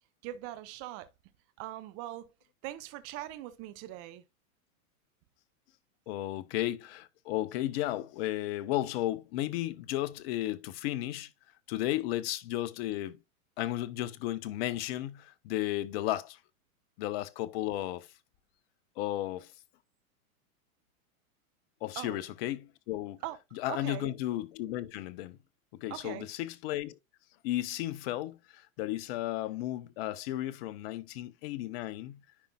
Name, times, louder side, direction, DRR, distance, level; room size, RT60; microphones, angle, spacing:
voice 1, 0.2-1.1 1.6-2.3 2.6-4.2 22.0-22.2 23.2-23.4 23.7-24.1 25.9-26.3, right 14 dB, 35° right, 0.7 m, -41 dB
voice 2, 6.1-11.3 11.7-13.2 13.6-16.4 17.0-18.1 19.0-19.5 21.8-23.2 23.6-25.4 25.7-27.0 27.4-32.2, left 14 dB, 45° left, 0.8 m, -34 dB
10.0 x 5.2 x 2.3 m
hypercardioid pair, 120°, 42 cm